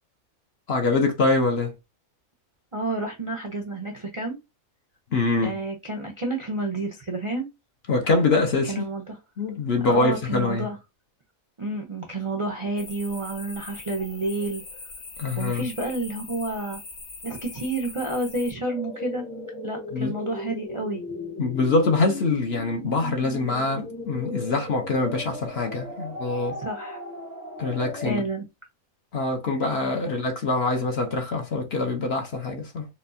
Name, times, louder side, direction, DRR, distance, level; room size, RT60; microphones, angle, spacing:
voice 1, 0.7-1.7 5.1-5.6 7.9-8.8 9.4-10.7 15.2-15.6 19.9-20.1 21.4-26.5 27.6-28.2 29.1-32.9, left 3 dB, 55° left, 0.9 m, -24 dB
voice 2, 2.7-4.4 5.4-7.5 8.7-9.2 9.9-10.8 11.6-14.6 15.4-16.8 17.2-19.2 19.6-21.0 26.6-27.0 28.0-28.4, right 2 dB, 40° right, 0.4 m, -30 dB
sound 1, 12.8-18.5, left 3 dB, 90° left, 1.6 m, -41 dB
sound 2, 18.6-28.1, left 1 dB, 15° left, 0.6 m, -37 dB
4.2 x 2.3 x 2.6 m
omnidirectional pair, 1.5 m